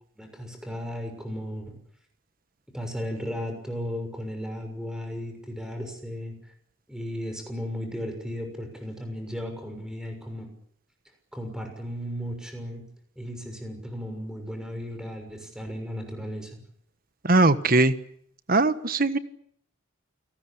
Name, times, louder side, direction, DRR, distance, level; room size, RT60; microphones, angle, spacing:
voice 1, 0.2-1.7 2.7-6.3 6.9-10.5 11.3-12.8 13.2-16.6, equal, 5° right, 5 dB, 6.3 m, -35 dB
voice 2, 17.2-17.9 18.5-19.2, right 2 dB, 45° right, 12 dB, 1.4 m, -20 dB
29.0 x 19.5 x 8.6 m, 0.67 s
head